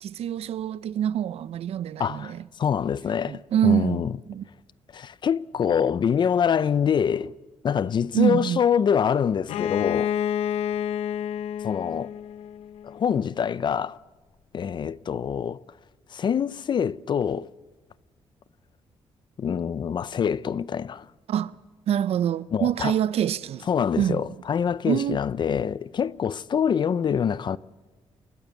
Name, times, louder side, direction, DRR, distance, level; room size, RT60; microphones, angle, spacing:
voice 1, 0.0-2.4 3.2-4.5 8.1-8.6 21.3-21.5 21.9-23.7 24.0-24.2 24.9-25.2, right 10 dB, 75° right, 0.7 m, -25 dB
voice 2, 2.0-2.3 2.6-4.1 4.9-7.3 7.6-10.1 11.6-12.1 12.8-14.0 14.5-15.6 16.1-17.5 19.4-21.1 22.5-22.9 23.7-27.6, left 7 dB, 45° left, 0.6 m, -25 dB
Bowed string instrument, 9.5-13.1, left 9 dB, 85° left, 0.7 m, -29 dB
29.0 x 14.0 x 8.3 m
cardioid pair, 125°, 10 cm